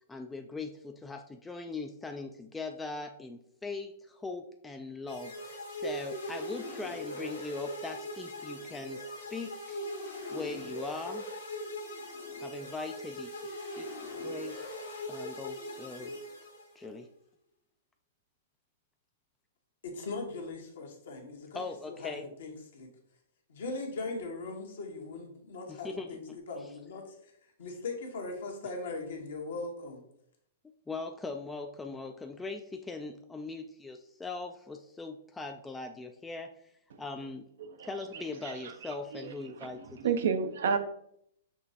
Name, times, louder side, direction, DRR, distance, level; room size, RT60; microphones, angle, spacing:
voice 1, 0.1-9.8 10.3-11.3 12.4-13.9 14.2-14.8 15.1-16.2 16.8-17.1 21.5-22.3 25.7-26.7 30.9-37.5 37.8-40.2, left 3 dB, 10° left, 4 dB, 0.4 m, -41 dB
sound 1, 5.1-16.9, left 1 dB, 80° left, 1.5 m, -40 dB
voice 2, 19.8-21.6 21.9-22.1 22.4-22.9 23.5-26.2 26.5-27.3 27.6-30.0, left 3 dB, 65° left, 2 dB, 1.1 m, -39 dB
voice 3, 37.8-38.7 39.2-39.3 39.6-40.8, right 6 dB, 65° right, 8 dB, 0.6 m, -31 dB
6.0 x 3.0 x 2.7 m, 0.70 s
figure-of-eight pair, 110°, 0 cm